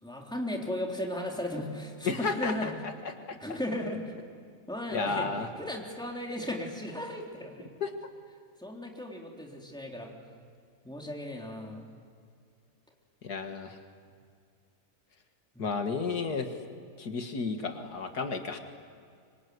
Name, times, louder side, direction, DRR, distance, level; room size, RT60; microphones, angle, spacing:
voice 1, 0.0-2.7 3.4-4.1 4.7-7.7 8.6-10.1 10.8-11.9 15.5-15.8, left 1 dB, 5° left, 0 dB, 3.5 m, -36 dB
voice 2, 2.0-2.7 3.0-3.4 4.9-5.5 7.8-7.9 13.2-13.8 15.6-16.5 17.0-18.6, left 4 dB, 80° left, 6 dB, 2.3 m, -32 dB
25.5 x 24.5 x 9.6 m, 2.3 s
omnidirectional pair, 1.7 m